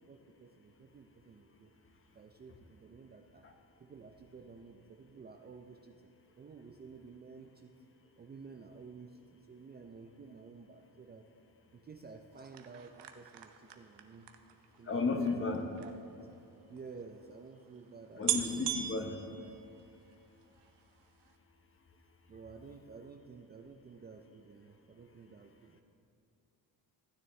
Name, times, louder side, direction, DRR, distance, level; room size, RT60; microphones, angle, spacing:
voice 1, 0.0-1.7 2.1-3.4 3.8-6.1 6.4-7.7 8.2-11.2 11.7-14.3 14.8-15.2 15.8-15.9 16.7-18.5 22.3-25.8, right 4 dB, 25° right, 4 dB, 0.4 m, -52 dB
sound 1, 12.3-15.9 16.8-16.9 17.0-17.1 17.8-17.9 18.2-20.2 20.6-21.0 21.2-21.3, right 10 dB, 90° right, 0.8 m, -39 dB
voice 2, 14.8-15.6 18.1-19.2, left 3 dB, 30° left, 4 dB, 1.1 m, -33 dB
15.5 x 9.6 x 3.2 m, 2.6 s
cardioid pair, 140°, 40 cm